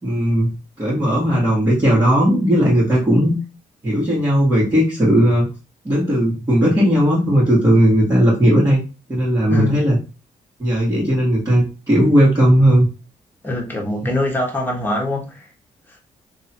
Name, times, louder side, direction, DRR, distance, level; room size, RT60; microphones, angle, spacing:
voice 1, 0.0-3.4 3.8-5.5 5.8-8.8 9.1-10.0 10.6-12.9, equal, 25° right, 1.9 m, -16 dB
voice 2, 9.5-9.8 13.4-15.5, left 2 dB, 15° left, 1.6 m, -23 dB
3.0 x 2.9 x 4.4 m
cardioid pair, 75°, 15 cm